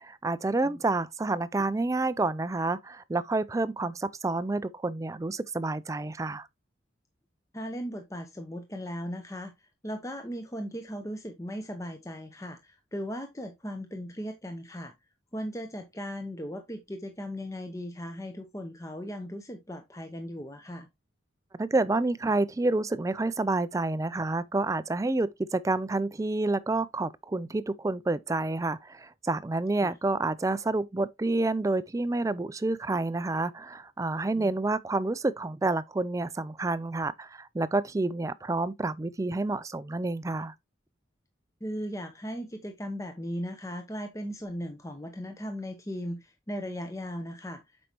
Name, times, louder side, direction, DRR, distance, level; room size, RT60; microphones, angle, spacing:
voice 1, 0.0-6.5 21.6-40.5, right 2 dB, 15° right, 0.3 m, -29 dB
voice 2, 7.5-14.9 15.3-20.9 29.8-29.9 34.3-34.5 41.6-47.6, equal, 15° left, 0.8 m, -37 dB
7.8 x 5.2 x 2.9 m
head